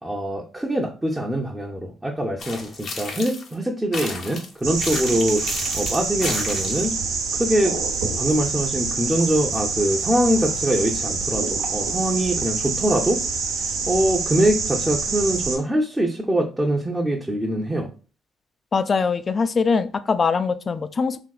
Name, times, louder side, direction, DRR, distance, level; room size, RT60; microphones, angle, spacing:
voice 1, 0.0-5.4 5.7-7.0 7.3-7.8 8.2-17.9, right 1 dB, 15° right, -2 dB, 0.6 m, -23 dB
sound 1, 2.4-3.5 3.9-6.9, left 3 dB, 60° left, 0.7 m, -33 dB
sound 2, 4.6-15.6, right 4 dB, 85° right, 0.8 m, -26 dB
voice 2, 18.7-21.2, left 5 dB, 45° left, 12 dB, 0.3 m, -22 dB
3.5 x 2.8 x 2.4 m, 0.36 s
hypercardioid pair, 55°, 0 cm